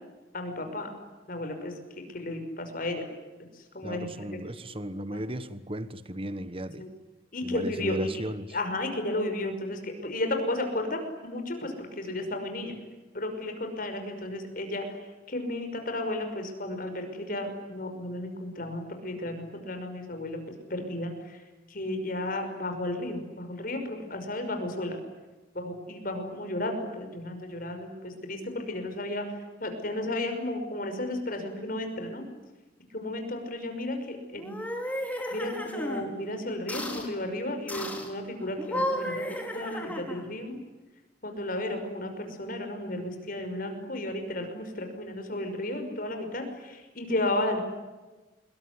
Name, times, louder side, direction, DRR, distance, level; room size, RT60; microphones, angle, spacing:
voice 1, 0.3-0.9 1.3-3.1 3.5-4.4 5.1-5.2 6.8-6.9 7.3-8.1 8.5-12.7 13.1-15.0 15.3-20.4 20.7-21.4 21.7-25.0 25.5-29.2 29.6-32.2 32.9-34.5 35.3-40.6 41.2-47.6, left 1 dB, 50° left, 6 dB, 5.8 m, -33 dB
voice 2, 3.8-6.8 7.4-8.6, equal, 30° right, 13 dB, 1.4 m, -36 dB
sound 1, 34.3-36.0 36.7-37.1 37.7-38.1 38.6-40.3, left 1 dB, 10° left, 4.7 m, -33 dB
26.0 x 23.0 x 9.7 m, 1.2 s
head